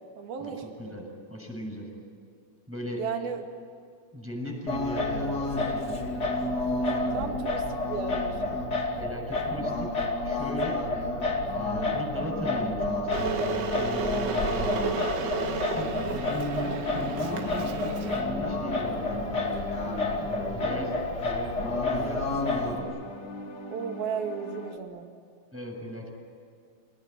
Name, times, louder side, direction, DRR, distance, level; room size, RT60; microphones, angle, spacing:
voice 1, 0.2-1.1 3.0-3.5 7.1-8.6 15.8-16.3 23.7-25.1, right 6 dB, 60° right, 4 dB, 3.8 m, -35 dB
voice 2, 0.8-1.9 2.7-3.0 4.1-6.0 9.0-9.9 10.2-10.8 11.5-15.0 15.7-19.1 19.8-23.0 25.5-26.1, equal, 5° right, -1 dB, 6.8 m, -37 dB
Singing, 4.7-22.8, left 2 dB, 25° left, 2.6 m, -30 dB
Water / Boiling, 13.1-18.2, right 5 dB, 90° right, 4.5 m, -33 dB
sound 1, 13.2-24.8, left 3 dB, 65° left, 1.0 m, -42 dB
28.5 x 19.5 x 9.7 m, 2.3 s
omnidirectional pair, 5.1 m